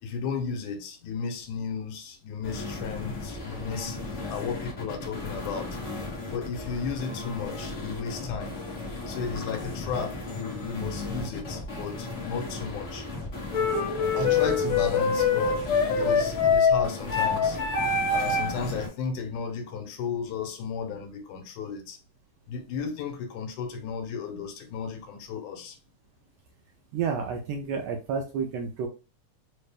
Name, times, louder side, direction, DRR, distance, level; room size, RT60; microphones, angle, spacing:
voice 1, 0.0-5.8 6.3-8.6 9.1-13.1 14.1-15.6 16.0-17.6 18.1-22.0 22.5-25.8, left 6 dB, 90° left, 2.2 m, -34 dB
sound 1, 2.4-18.9, left 2 dB, 45° left, 0.9 m, -36 dB
sound 2, 13.5-18.6, left 5 dB, 70° left, 2.3 m, -24 dB
voice 2, 26.9-28.9, right 6 dB, 80° right, 1.5 m, -30 dB
4.9 x 2.1 x 3.3 m
omnidirectional pair, 3.3 m